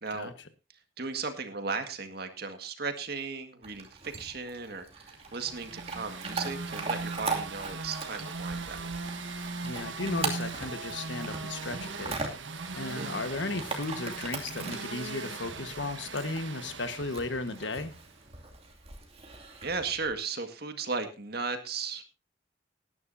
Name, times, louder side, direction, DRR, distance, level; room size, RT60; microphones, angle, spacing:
voice 1, 1.0-8.8 13.0-13.2 19.6-22.0, right 4 dB, 55° right, 7 dB, 1.9 m, -36 dB
Chewing mastication / Dog, 3.6-20.1, right 4 dB, 35° right, 2.6 m, -40 dB
sound 1, 5.2-18.1, right 3 dB, 85° right, 1.5 m, -39 dB
voice 2, 9.6-12.2 12.7-17.9, left 2 dB, 75° left, 10 dB, 1.5 m, -35 dB
18.5 x 11.0 x 2.7 m, 0.30 s
head